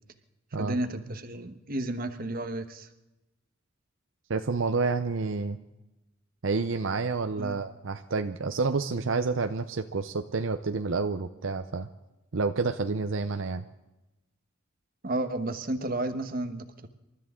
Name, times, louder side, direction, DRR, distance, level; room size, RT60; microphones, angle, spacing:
voice 1, 0.6-2.9 7.4-7.6 15.0-16.9, right 1 dB, 45° right, 8 dB, 1.1 m, -32 dB
voice 2, 4.3-5.6 6.4-11.9 12.3-13.7, right 4 dB, 70° right, 7 dB, 0.7 m, -29 dB
28.0 x 13.0 x 3.7 m, 0.99 s
head